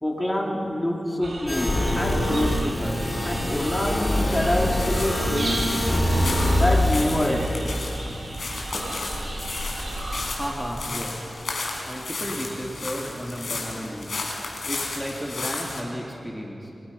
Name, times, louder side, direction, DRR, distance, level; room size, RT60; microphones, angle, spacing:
voice 1, 0.0-5.7 6.5-7.6, left 1 dB, 15° left, -1 dB, 3.7 m, -26 dB
sound 1, 1.2-10.3, right 1 dB, 60° right, 6.3 m, -34 dB
sound 2, 1.5-7.0, left 1 dB, 35° left, 4.5 m, -24 dB
sound 3, 2.5-15.8, left 3 dB, 70° left, 5.3 m, -34 dB
voice 2, 10.3-11.3 11.9-14.1 14.6-16.7, equal, 5° right, -2 dB, 3.2 m, -33 dB
30.0 x 26.5 x 5.8 m, 2.9 s
wide cardioid pair, 70°, 0 cm